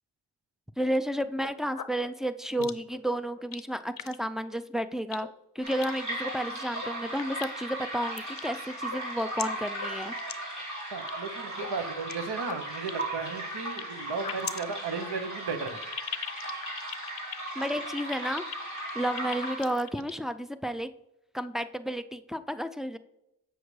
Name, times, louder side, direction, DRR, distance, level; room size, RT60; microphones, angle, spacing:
voice 1, 0.8-5.3 5.6-10.2 17.6-18.4 18.8-20.9 21.3-23.0, equal, ahead, 9 dB, 0.3 m, -32 dB
sound 1, 1.3-2.1 2.6-3.0 3.4-3.6 4.0-4.2 4.5-4.6 5.1-5.3 5.7-5.9 6.6-6.9 7.2-7.8 8.1-8.5 8.8-9.4 9.8-9.9 10.2-10.3 10.6-11.1 11.5-12.1 12.4-13.8 14.1-20.2, left 8 dB, 60° left, 0.6 m, -39 dB
sound 2, 5.6-19.9, right 1 dB, 45° right, 2.7 m, -37 dB
voice 2, 10.9-15.8, right 4 dB, 75° right, 8 dB, 0.8 m, -35 dB
7.9 x 6.5 x 3.1 m, 0.86 s
cardioid pair, 40°, 40 cm